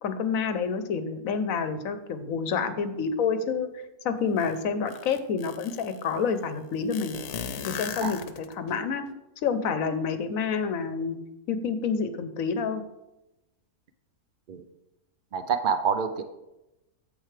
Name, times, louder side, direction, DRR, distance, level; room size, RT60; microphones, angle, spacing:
voice 1, 0.0-3.7 4.0-7.2 7.6-9.0 9.4-11.2 11.5-12.8, left 5 dB, 70° left, 10 dB, 1.1 m, -28 dB
sound 1, 4.4-4.5 4.9-6.0 6.9-8.7, left 7 dB, 90° left, 1.2 m, -37 dB
voice 2, 15.3-16.2, right 6 dB, 65° right, 9 dB, 0.5 m, -27 dB
9.0 x 7.8 x 3.3 m, 0.95 s
omnidirectional pair, 1.6 m